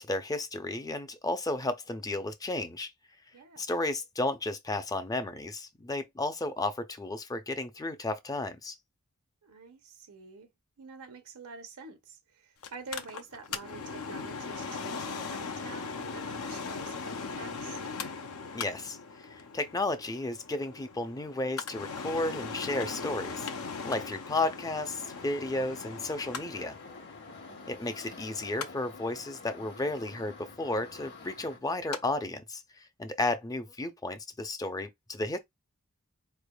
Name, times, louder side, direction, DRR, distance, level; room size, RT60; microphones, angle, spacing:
voice 1, 0.0-2.9 3.6-8.8 18.5-23.5 23.8-26.8 27.7-32.6 33.0-35.4, left 2 dB, 15° left, 0.5 m, -33 dB
voice 2, 3.3-3.8 9.4-10.5 10.8-17.8 27.4-27.7, right 4 dB, 75° right, 0.7 m, -47 dB
Mechanical fan, 12.6-32.0 32.3-32.4, left 5 dB, 70° left, 0.6 m, -40 dB
sound 1, 22.7-31.6, left 4 dB, 50° left, 1.1 m, -50 dB
4.5 x 3.3 x 2.3 m
head